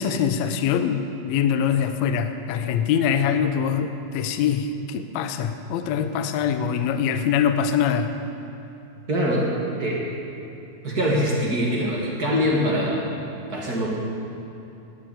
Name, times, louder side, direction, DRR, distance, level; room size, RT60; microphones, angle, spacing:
voice 1, 0.0-8.1, left 7 dB, 80° left, 8 dB, 1.6 m, -23 dB
voice 2, 9.1-10.1 10.8-13.0 13.5-13.9, equal, 40° right, -3 dB, 1.4 m, -23 dB
10.5 x 9.0 x 9.0 m, 2.7 s
omnidirectional pair, 4.0 m